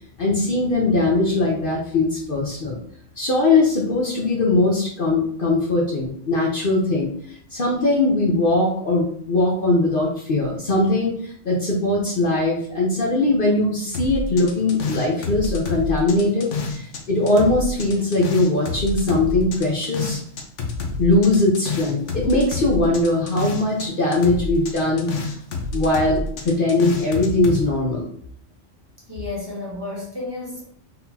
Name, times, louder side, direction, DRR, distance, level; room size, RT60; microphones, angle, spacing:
voice 1, 0.2-2.8 3.2-20.2 21.0-25.1 25.7-28.1, left 2 dB, 50° left, -3 dB, 0.9 m, -20 dB
sound 1, 13.9-17.0 17.3-23.9 24.1-27.6, left 3 dB, 70° left, 1.1 m, -28 dB
voice 2, 29.1-30.6, left 2 dB, 20° right, -4 dB, 1.3 m, -31 dB
4.3 x 3.8 x 2.8 m, 0.62 s
omnidirectional pair, 1.3 m